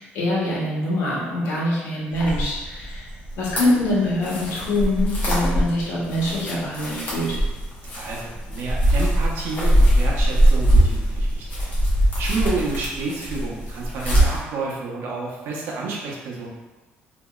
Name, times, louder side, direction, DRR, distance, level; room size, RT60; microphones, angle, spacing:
voice 1, 0.0-3.0 3.4-7.3, left 1 dB, 85° left, -6 dB, 1.0 m, -24 dB
sound 1, 2.1-14.4, right 1 dB, 40° left, 0.9 m, -22 dB
voice 2, 7.9-11.7 12.2-16.5, right 3 dB, 70° right, -3 dB, 0.6 m, -30 dB
2.9 x 2.6 x 2.3 m, 1.2 s
cardioid pair, 150°, 4 cm